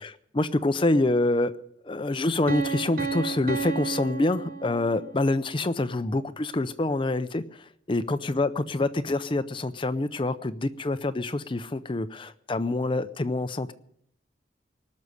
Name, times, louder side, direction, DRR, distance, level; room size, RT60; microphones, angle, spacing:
voice 1, 0.0-1.5 1.8-13.7, left 2 dB, 30° left, 12 dB, 0.5 m, -26 dB
Piano, 2.5-5.3, right 5 dB, 50° right, 0.9 m, -32 dB
19.0 x 6.5 x 9.7 m, 0.73 s
head